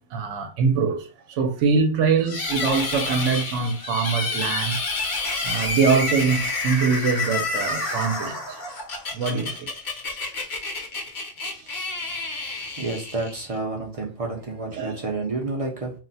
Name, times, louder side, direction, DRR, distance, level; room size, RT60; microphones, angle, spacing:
voice 1, 0.1-4.8 5.2-8.6 9.1-9.7 11.6-11.7 12.5-12.6 14.7-15.1, right 5 dB, 80° right, 0.9 m, -24 dB
sound 1, 2.3-13.6, left 3 dB, 50° left, 0.8 m, -29 dB
voice 2, 12.8-15.9, right 3 dB, 40° right, 0.5 m, -29 dB
2.4 x 2.1 x 3.8 m
omnidirectional pair, 1.2 m